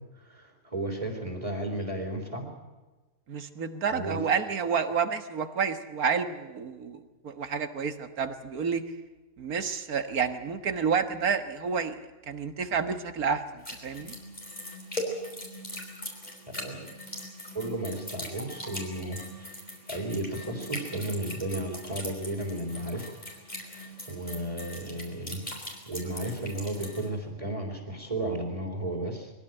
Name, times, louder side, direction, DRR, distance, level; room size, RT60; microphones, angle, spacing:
voice 1, 0.2-2.5 3.9-4.4 16.5-16.9 17.5-19.5 19.9-23.1 23.6-29.3, right 1 dB, 20° right, 2 dB, 3.8 m, -34 dB
voice 2, 3.3-8.9 9.4-14.1, right 6 dB, 85° right, 9 dB, 1.9 m, -30 dB
sound 1, 13.6-27.1, left 1 dB, 30° left, 5.0 m, -40 dB
22.5 x 16.5 x 9.0 m, 1.2 s
omnidirectional pair, 1.5 m